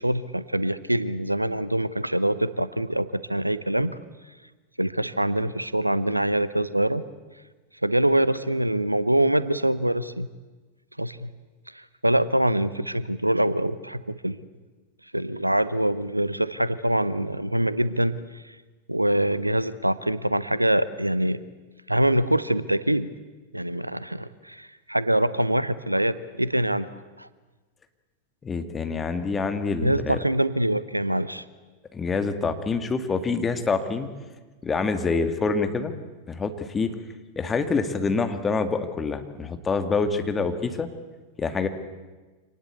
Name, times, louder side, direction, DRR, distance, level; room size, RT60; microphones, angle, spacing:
voice 1, 0.0-4.0 4.8-7.0 7.8-10.3 11.0-11.3 11.7-14.4 15.1-18.6 18.9-21.4 21.9-23.1 23.5-26.9 27.2-27.3 29.8-31.4, right 1 dB, 85° right, 16 dB, 0.8 m, -24 dB
voice 2, 28.4-30.2 31.9-34.1 34.6-35.9 36.3-36.9 37.4-40.9 41.4-41.7, left 4 dB, 20° left, 8 dB, 2.0 m, -26 dB
26.0 x 19.0 x 8.2 m, 1.3 s
figure-of-eight pair, 90°, 0 cm